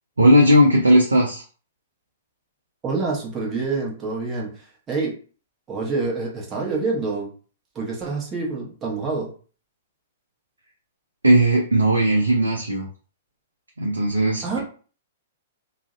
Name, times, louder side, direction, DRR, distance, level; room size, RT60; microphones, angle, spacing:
voice 1, 0.2-1.4 11.2-12.9 13.8-14.6, equal, 85° right, 0 dB, 0.4 m, -17 dB
voice 2, 2.8-5.1 5.7-7.3 7.7-9.3 14.4-14.6, right 3 dB, 20° right, -3 dB, 0.9 m, -27 dB
2.5 x 2.0 x 2.4 m, 0.40 s
figure-of-eight pair, 110°, 0 cm